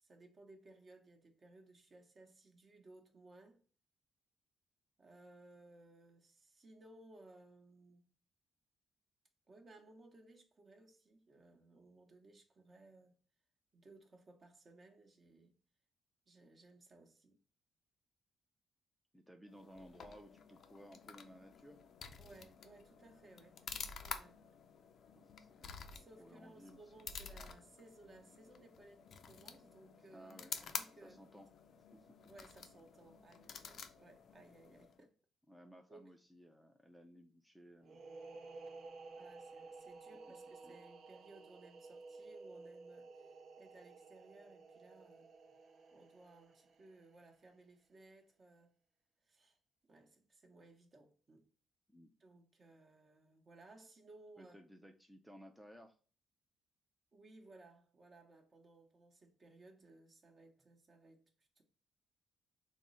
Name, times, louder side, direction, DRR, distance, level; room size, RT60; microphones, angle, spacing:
voice 1, 0.0-3.6 5.0-8.1 9.5-13.2 13.7-15.6 16.3-17.4 22.2-23.7 24.0-24.4 25.9-30.4 30.6-31.2 32.3-35.1 35.9-36.1 39.2-45.3 45.9-48.7 49.2-51.5 52.2-54.6 57.1-61.6, right 2 dB, 40° right, 0.8 m, -61 dB
voice 2, 19.1-21.8 25.1-25.8 26.2-26.8 30.1-30.5 31.0-31.5 31.9-32.2 34.7-35.1 35.5-38.0 40.6-40.8 51.9-52.1 54.4-56.0, equal, ahead, 0.4 m, -58 dB
sound 1, 19.5-35.0, left 6 dB, 60° left, 0.4 m, -50 dB
sound 2, 37.8-47.3, right 3 dB, 55° right, 0.5 m, -54 dB
3.6 x 2.0 x 3.8 m
cardioid pair, 90°, 0 cm